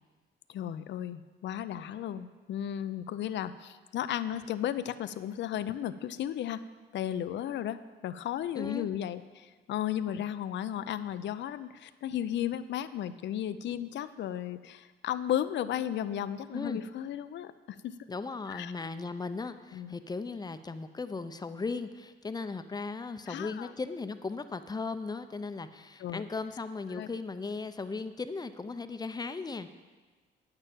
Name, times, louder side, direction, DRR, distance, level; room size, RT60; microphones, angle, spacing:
voice 1, 0.5-6.6 6.9-18.0 18.5-18.7 19.7-19.9 23.3-23.7 26.0-26.2 26.9-27.1, left 11 dB, 65° left, 13 dB, 0.5 m, -34 dB
voice 2, 8.5-8.9 16.5-16.8 18.1-29.7, left 4 dB, 20° left, 10 dB, 0.6 m, -37 dB
9.0 x 6.7 x 7.3 m, 1.4 s
cardioid pair, 90°, 20 cm